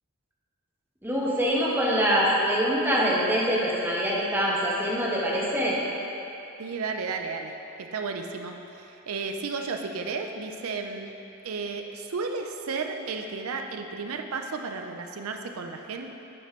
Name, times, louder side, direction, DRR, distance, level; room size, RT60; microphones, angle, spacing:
voice 1, 1.0-5.8, equal, 10° right, -5 dB, 1.1 m, -24 dB
voice 2, 6.6-11.1 11.4-16.1, right 4 dB, 85° right, 4 dB, 0.5 m, -33 dB
9.1 x 3.1 x 5.8 m, 2.9 s
head